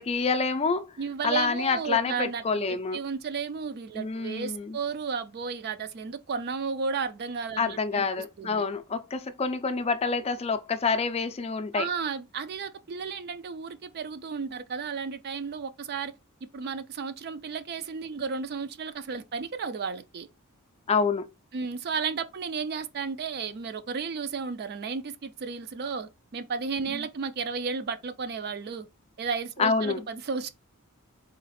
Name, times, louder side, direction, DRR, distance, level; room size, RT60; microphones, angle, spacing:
voice 1, 0.0-1.0 1.2-3.0 3.9-4.8 7.6-11.9 20.9-21.3 26.9-27.1 29.6-30.0, left 4 dB, 25° left, 0.4 m, -27 dB
voice 2, 1.0-2.4 2.9-8.1 8.4-8.6 11.7-16.1 16.5-20.3 21.5-28.9 29.2-30.5, right 5 dB, 45° right, 0.4 m, -33 dB
3.9 x 2.4 x 4.1 m
head